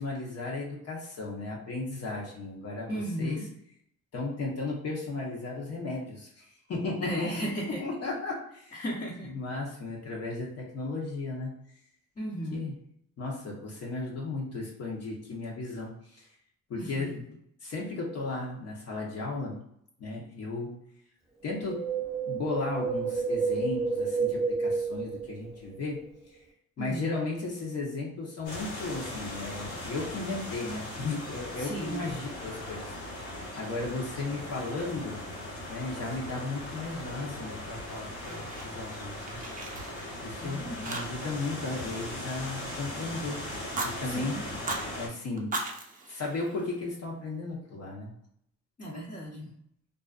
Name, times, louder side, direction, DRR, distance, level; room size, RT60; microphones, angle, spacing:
voice 1, 0.0-3.4 4.1-7.5 7.8-8.8 9.3-11.6 12.5-12.7 13.2-16.3 16.7-17.2 17.6-19.6 20.0-20.8 21.4-21.9 22.2-26.0 26.8-33.3 33.5-35.2 35.7-39.4 40.2-43.4 43.8-44.4 45.0-45.5 46.1-48.1, left 3 dB, 55° left, -3 dB, 0.8 m, -35 dB
voice 2, 2.9-3.5 7.0-7.8 8.7-9.3 12.2-12.7 16.8-17.2 26.8-27.1 31.6-32.0 40.4-41.0 44.0-44.5 48.8-49.5, equal, 30° left, -5 dB, 0.7 m, -35 dB
Wind, 21.5-25.8 26.1-26.2, right 4 dB, ahead, 0.8 m, -30 dB
sound 1, 28.4-45.1, left 1 dB, 85° left, 1.2 m, -39 dB
Fire, 37.8-38.9 39.2-40.4 40.8-41.4 41.7-43.1 43.5-43.9 44.5-44.9 45.4-46.9, right 2 dB, 30° right, 0.5 m, -38 dB
2.4 x 2.3 x 2.4 m, 0.70 s
cardioid pair, 90°, 30 cm